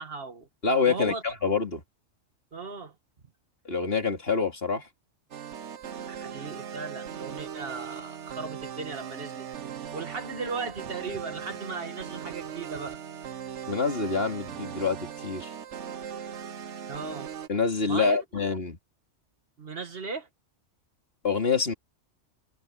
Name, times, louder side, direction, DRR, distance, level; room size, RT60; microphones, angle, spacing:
voice 1, 0.0-0.5 0.9-1.2 2.5-2.9 6.1-9.5 9.9-13.0 16.9-17.3 17.9-18.2 19.6-20.3, right 4 dB, 50° right, 1.9 m, -37 dB
voice 2, 0.6-1.8 3.6-4.9 13.7-15.5 17.5-18.8 21.2-21.7, left 4 dB, 55° left, 3.1 m, -26 dB
sound 1, 5.3-17.5, right 8 dB, 75° right, 1.2 m, -39 dB
omnidirectional pair, 1.2 m